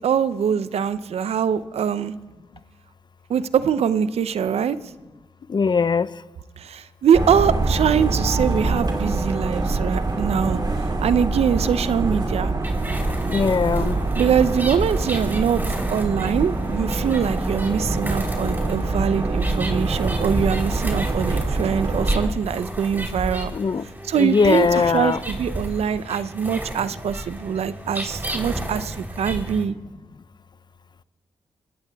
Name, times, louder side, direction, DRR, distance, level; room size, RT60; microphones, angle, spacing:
voice 1, 0.0-2.1 3.3-4.8 6.6-10.6 11.0-12.5 14.2-15.6 15.9-23.5 24.0-29.7, right 7 dB, 70° right, 0.5 m, -23 dB
voice 2, 5.5-6.1 13.3-14.0 23.5-23.8 24.2-25.2, left 5 dB, 40° left, 0.5 m, -20 dB
sound 1, 7.1-22.3, right 2 dB, 40° right, 2.6 m, -25 dB
sound 2, 12.6-29.6, right 1 dB, 20° right, 3.3 m, -32 dB
21.0 x 16.5 x 2.3 m
supercardioid pair, 40°, 11 cm